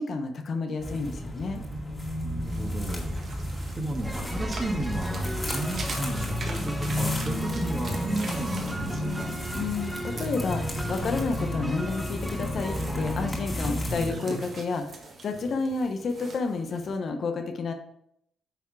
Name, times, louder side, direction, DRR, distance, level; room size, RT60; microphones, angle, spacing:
voice 1, 0.0-1.6 9.5-17.7, left 4 dB, 55° left, 5 dB, 1.0 m, -30 dB
sound 1, 0.8-14.1, left 1 dB, 20° left, 2.1 m, -32 dB
voice 2, 2.2-9.3, right 1 dB, 20° right, 1 dB, 1.7 m, -34 dB
sound 2, 2.5-17.0, right 3 dB, 45° right, 1.5 m, -44 dB
sound 3, 4.0-14.2, equal, ahead, 0.9 m, -39 dB
9.2 x 3.6 x 4.7 m, 0.73 s
cardioid pair, 90°, 0 cm